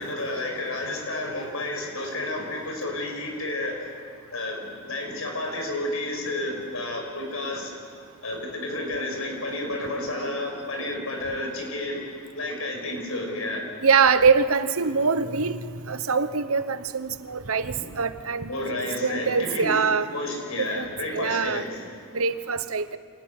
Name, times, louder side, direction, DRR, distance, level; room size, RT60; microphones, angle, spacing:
voice 1, 0.0-3.9 4.3-7.8 8.2-12.0 12.3-13.7 17.7-17.8 18.5-19.7 20.1-21.8, left 2 dB, 80° left, 2 dB, 6.0 m, -31 dB
voice 2, 13.8-15.6 15.9-18.5 19.0-20.1 20.6-21.6 22.1-23.0, right 5 dB, 75° right, 12 dB, 1.0 m, -23 dB
26.5 x 18.5 x 9.6 m, 2.2 s
head